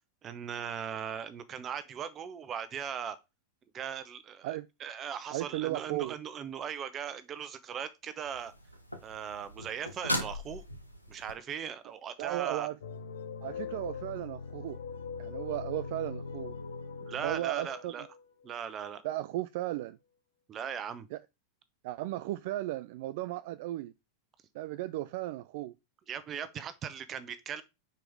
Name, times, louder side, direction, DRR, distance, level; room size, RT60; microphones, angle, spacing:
voice 1, 0.2-3.2 3.7-8.5 9.0-10.6 11.1-12.7 17.0-18.1 18.4-19.0 20.5-21.1 26.1-27.6, right 8 dB, 30° right, 1.0 m, -39 dB
voice 2, 5.3-6.2 12.2-12.8 13.4-14.8 15.2-16.5 17.2-18.1 19.0-20.0 21.1-21.2 21.8-23.9 24.5-25.7, right 16 dB, 50° right, 0.4 m, -35 dB
sound 1, 8.2-11.3 14.8-14.9, left 1 dB, 90° left, 1.1 m, -38 dB
sound 2, 12.8-19.0, left 5 dB, 65° left, 0.9 m, -41 dB
5.8 x 4.8 x 4.7 m
figure-of-eight pair, 90°, 0 cm